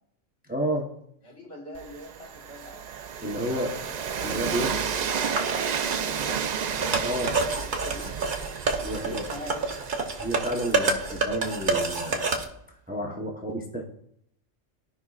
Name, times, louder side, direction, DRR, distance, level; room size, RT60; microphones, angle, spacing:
voice 1, 0.5-0.9 3.2-3.8 4.2-4.8 7.0-7.4 8.8-9.2 10.2-12.2 12.9-13.8, equal, 10° right, 1 dB, 0.8 m, -30 dB
voice 2, 1.2-2.9 3.3-3.9 4.3-5.9 6.3-6.5 7.4-8.1 8.8-9.6, left 1 dB, 55° left, -2 dB, 2.0 m, -43 dB
Train, 1.7-11.6, right 7 dB, 70° right, 0.4 m, -32 dB
sound 1, 5.2-12.4, right 3 dB, 45° right, 1.0 m, -29 dB
15.0 x 5.5 x 2.4 m, 0.71 s
omnidirectional pair, 1.3 m